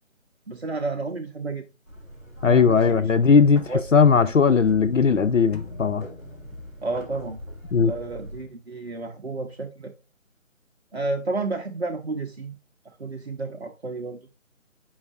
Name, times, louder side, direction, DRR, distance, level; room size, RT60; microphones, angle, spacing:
voice 1, 0.5-1.7 2.4-3.1 3.7-3.8 6.8-7.4 7.8-9.9 10.9-12.5 12.8-14.3, right 3 dB, 55° right, 0.8 m, -31 dB
sound 1, 1.9-8.4, equal, 10° left, 1.6 m, -42 dB
voice 2, 2.4-6.1 7.7-7.9, left 5 dB, 70° left, 0.5 m, -18 dB
sound 2, 5.5-7.4, left 4 dB, 50° left, 1.5 m, -47 dB
9.5 x 5.6 x 2.4 m
figure-of-eight pair, 160°, 40 cm